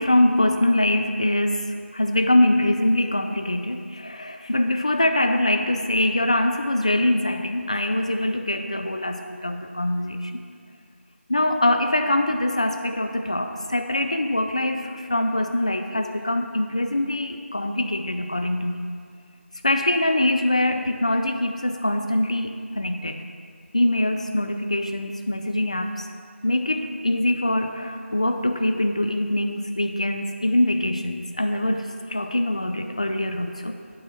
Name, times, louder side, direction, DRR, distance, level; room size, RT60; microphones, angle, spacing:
voice 1, 0.0-10.4 11.3-18.9 19.6-23.2 23.7-26.1 26.4-33.8, left 1 dB, 30° left, 6 dB, 0.4 m, -23 dB
9.0 x 4.1 x 7.1 m, 2.2 s
figure-of-eight pair, 175°, 7 cm